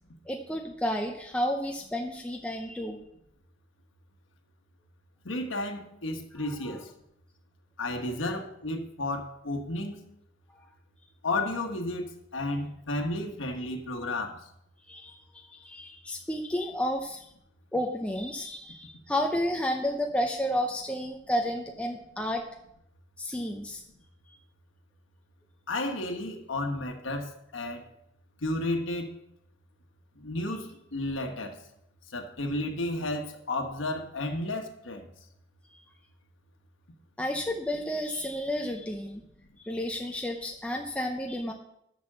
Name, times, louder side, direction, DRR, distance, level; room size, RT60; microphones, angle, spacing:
voice 1, 0.3-3.0 6.4-6.8 10.5-10.7 14.9-17.3 17.7-22.5 23.2-23.8 30.5-30.6 35.7-35.8 37.2-39.2 39.6-41.5, equal, 5° left, 2 dB, 0.6 m, -31 dB
voice 2, 5.2-6.8 7.8-10.0 11.2-14.4 25.7-27.8 28.4-29.1 30.2-31.5 32.1-35.0, left 2 dB, 85° left, 5 dB, 1.2 m, -32 dB
7.3 x 6.0 x 6.7 m, 0.78 s
head